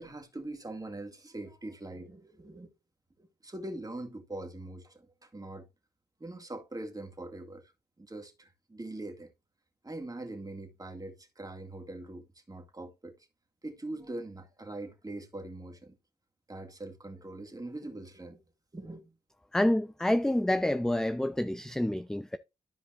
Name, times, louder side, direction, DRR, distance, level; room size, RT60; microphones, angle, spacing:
voice 1, 0.0-2.7 3.2-5.7 6.2-7.6 8.0-9.3 9.8-13.1 13.6-15.9 16.5-18.4 18.7-19.1, right 2 dB, 20° right, 2.1 m, -42 dB
voice 2, 19.5-22.4, left 1 dB, 5° left, 0.5 m, -28 dB
13.0 x 5.0 x 2.5 m
cardioid pair, 55°, 16 cm